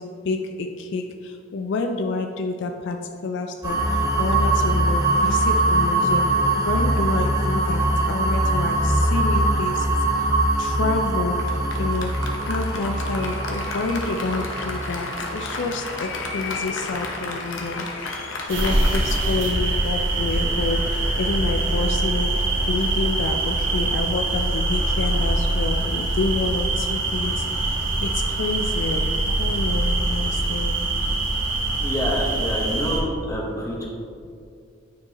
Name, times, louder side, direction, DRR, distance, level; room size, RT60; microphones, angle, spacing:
voice 1, 0.0-3.0 3.2-3.8 4.2-6.2 6.5-10.0 10.6-11.4 11.8-12.1 12.4-17.9 18.5-22.3 22.7-29.1 29.4-30.8, left 3 dB, 65° left, 5 dB, 0.4 m, -28 dB
sound 1, 3.6-17.4, right 2 dB, 15° right, 1.2 m, -23 dB
Applause, 11.4-19.2, left 3 dB, 85° left, 0.9 m, -32 dB
sound 2, 18.5-33.0, right 2 dB, 75° right, 1.3 m, -23 dB
voice 2, 31.8-33.9, equal, 15° left, -3 dB, 1.2 m, -27 dB
9.3 x 4.6 x 3.0 m, 2.4 s
head